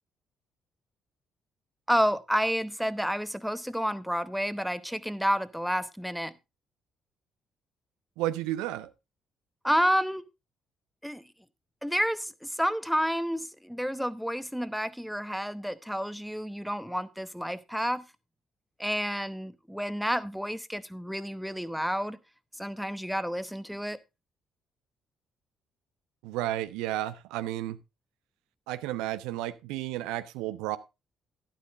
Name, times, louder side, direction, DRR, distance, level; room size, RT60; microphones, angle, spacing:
voice 1, 1.9-6.3 9.6-10.2 11.0-11.2 11.8-18.0 18.8-22.2 22.6-24.0, equal, ahead, 0.9 m, -30 dB
voice 2, 8.2-8.9 26.2-27.8 28.7-30.8, right 14 dB, 70° right, 0.5 m, -32 dB
12.0 x 12.0 x 2.5 m
figure-of-eight pair, 45°, 0 cm